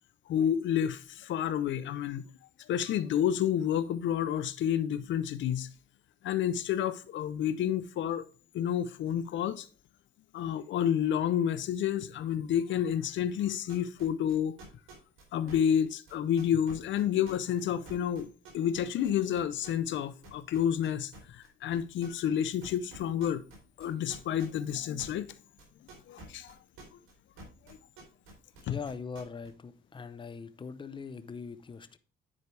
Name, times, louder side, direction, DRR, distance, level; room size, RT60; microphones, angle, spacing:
voice 1, 0.3-2.3 2.7-5.7 6.2-8.3 8.5-9.7 10.3-14.6 15.3-23.4 23.8-25.3 26.1-26.5 28.6-28.8, left 9 dB, 70° left, 0.5 m, -30 dB
sound 1, 13.7-20.0 20.2-21.5 21.7-22.4 22.6-27.1 27.4-29.5, right 3 dB, 85° right, 3.1 m, -49 dB
voice 2, 28.7-32.0, left 5 dB, 25° left, 0.6 m, -41 dB
9.8 x 4.6 x 3.2 m
cardioid pair, 90°, 20 cm